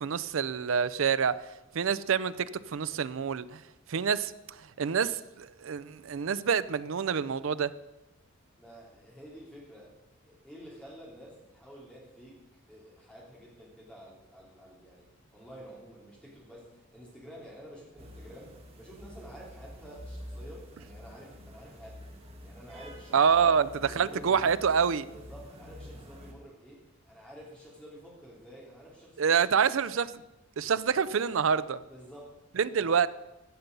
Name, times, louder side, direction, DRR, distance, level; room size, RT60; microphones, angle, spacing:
voice 1, 0.0-1.4 1.7-3.6 3.9-4.3 4.8-7.7 23.1-23.7 24.0-25.1 29.2-30.1 30.6-31.8 32.6-33.1, right 6 dB, 60° right, 16 dB, 0.4 m, -26 dB
voice 2, 8.6-12.4 12.7-22.1 22.4-23.6 23.9-24.6 25.1-29.3 29.8-29.9 31.9-32.4 32.8-33.0, equal, 5° left, -4 dB, 3.0 m, -50 dB
sound 1, 18.0-26.3, equal, 25° right, 1.3 m, -47 dB
15.0 x 6.9 x 5.3 m, 0.99 s
head